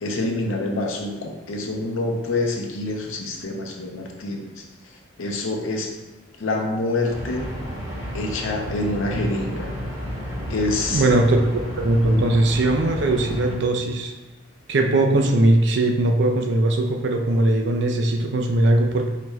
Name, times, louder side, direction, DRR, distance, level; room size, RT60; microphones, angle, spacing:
voice 1, 0.0-4.6 5.2-5.9 6.4-7.5 8.1-9.7 10.5-11.0 12.1-12.2, left 2 dB, 80° left, 1 dB, 0.6 m, -26 dB
sound 1, 7.1-13.6, equal, 15° right, 0.8 m, -32 dB
voice 2, 10.9-14.1 14.7-19.1, right 2 dB, 60° right, 3 dB, 0.4 m, -20 dB
4.1 x 3.1 x 2.3 m, 1.1 s
head